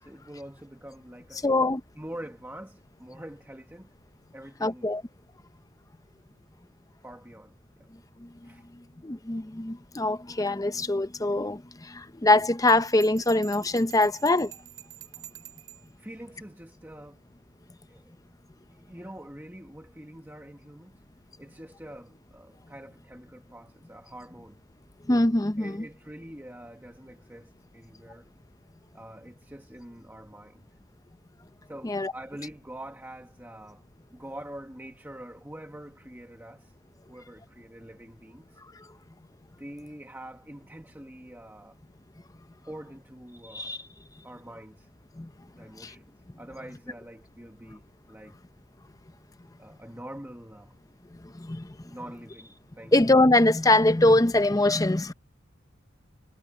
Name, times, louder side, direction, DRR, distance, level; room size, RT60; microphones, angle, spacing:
voice 1, 0.0-3.9 4.3-4.9 7.0-7.5 7.8-7.9 8.4-8.7 16.0-17.3 17.9-18.1 18.7-21.0 21.4-24.6 25.6-28.3 28.9-30.6 31.7-33.8 34.1-36.7 37.1-38.6 39.6-41.8 42.6-43.9 44.2-44.9 45.5-46.0 46.4-47.8 48.1-48.3 49.6-50.7 51.8-52.9, right 1 dB, 10° right, 1.4 m, -45 dB
voice 2, 1.4-1.8 4.6-5.0 8.2-8.5 9.0-14.5 25.1-25.9 31.8-32.1 43.5-43.8 45.1-45.3 45.8-45.9 51.1-51.8 52.9-55.1, left 2 dB, 15° left, 0.6 m, -23 dB
Bell, 12.7-15.9, right 14 dB, 85° right, 4.8 m, -46 dB
head